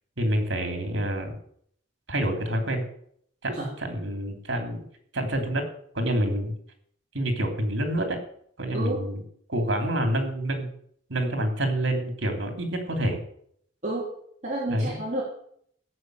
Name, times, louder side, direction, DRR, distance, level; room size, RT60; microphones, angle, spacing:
voice 1, 0.2-1.3 2.1-2.8 3.4-4.8 5.1-5.6 5.9-6.5 7.1-8.2 8.6-9.2 9.5-10.7 11.1-13.2 14.7-15.0, right 1 dB, 75° right, 5 dB, 3.2 m, -27 dB
voice 2, 8.7-9.1 13.8-14.1 14.4-15.2, right 1 dB, 35° right, -5 dB, 3.1 m, -30 dB
16.0 x 7.3 x 7.8 m, 0.66 s
head